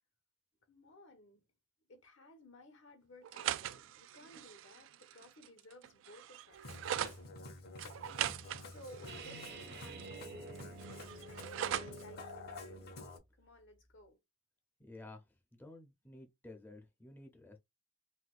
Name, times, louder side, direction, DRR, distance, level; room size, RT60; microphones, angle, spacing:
voice 1, 0.7-1.4 1.9-6.7 8.7-10.6 11.3-12.8 13.4-14.2, left 1 dB, 75° left, 1.0 m, -57 dB
sound 1, 3.2-7.2 7.8-10.2 10.5-12.0, right 11 dB, 75° right, 0.3 m, -41 dB
Musical instrument, 6.5-13.2, left 2 dB, 55° left, 0.8 m, -49 dB
sound 2, 9.1-13.1, right 3 dB, 60° right, 0.8 m, -50 dB
voice 2, 14.8-15.2 15.5-17.6, left 2 dB, 10° left, 0.5 m, -53 dB
4.1 x 2.2 x 2.4 m
head